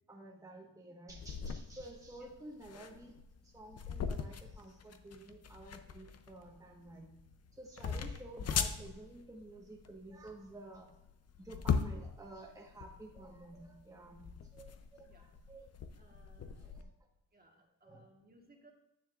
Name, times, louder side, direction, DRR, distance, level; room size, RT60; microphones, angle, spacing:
voice 1, 0.1-3.2 3.4-7.1 7.5-10.9 11.4-15.7 16.6-16.9 17.8-18.1, right 2 dB, 10° right, -2 dB, 1.3 m, -52 dB
sound 1, 1.1-16.8, left 6 dB, 50° left, 0.6 m, -40 dB
voice 2, 15.9-16.7 17.3-18.7, right 1 dB, 30° right, 0 dB, 1.4 m, -64 dB
9.6 x 7.2 x 2.5 m, 0.90 s
cardioid pair, 85°, 34 cm